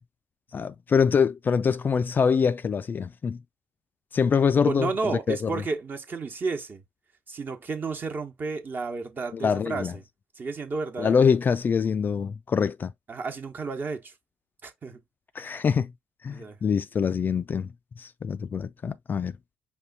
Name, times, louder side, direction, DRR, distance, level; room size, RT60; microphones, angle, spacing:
voice 1, 0.5-3.4 4.1-4.9 5.3-5.5 9.3-9.9 11.0-12.9 15.4-15.9 16.2-17.7 18.0-19.3, left 6 dB, 35° left, 0.4 m, -24 dB
voice 2, 4.6-6.8 7.3-10.0 10.4-11.2 13.1-14.1 14.6-15.0 16.3-16.6, right 4 dB, 35° right, 1.1 m, -32 dB
5.4 x 2.3 x 4.0 m
hypercardioid pair, 55°, 6 cm